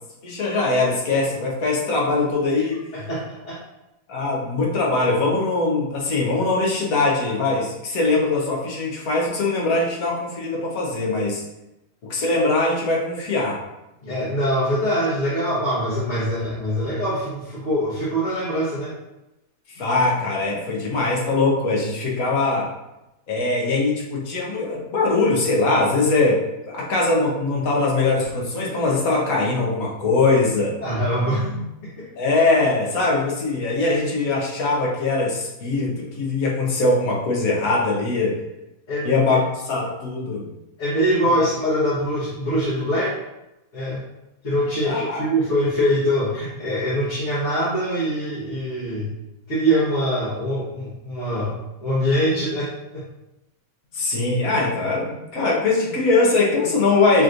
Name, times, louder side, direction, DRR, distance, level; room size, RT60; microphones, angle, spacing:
voice 1, 0.2-2.8 4.1-11.4 12.1-13.6 19.8-22.7 23.3-26.4 26.7-30.7 32.2-38.3 39.0-39.4 39.7-40.5 44.8-45.3 52.3-52.4 53.9-57.2, left 3 dB, 75° left, -3 dB, 1.5 m, -21 dB
voice 2, 2.9-3.6 14.0-18.9 30.8-32.1 38.9-39.2 40.8-43.1 43.7-44.0 44.4-49.1 49.5-53.0, equal, 55° left, -10 dB, 1.6 m, -23 dB
6.0 x 3.1 x 2.6 m, 0.93 s
omnidirectional pair, 1.5 m